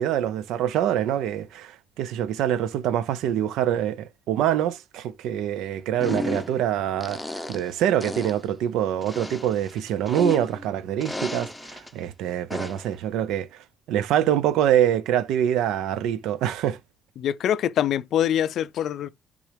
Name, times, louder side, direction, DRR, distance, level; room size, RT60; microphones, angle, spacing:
voice 1, 0.0-13.5 13.9-16.8, right 10 dB, 85° right, 0.6 m, -25 dB
sound 1, 6.0-6.7 7.0-7.7 8.0-8.4 9.0-10.7 11.0-11.9 12.5-12.9, left 1 dB, 5° left, 0.8 m, -33 dB
voice 2, 17.2-19.1, left 10 dB, 70° left, 0.4 m, -24 dB
10.5 x 3.8 x 3.3 m
cardioid pair, 90°, 0 cm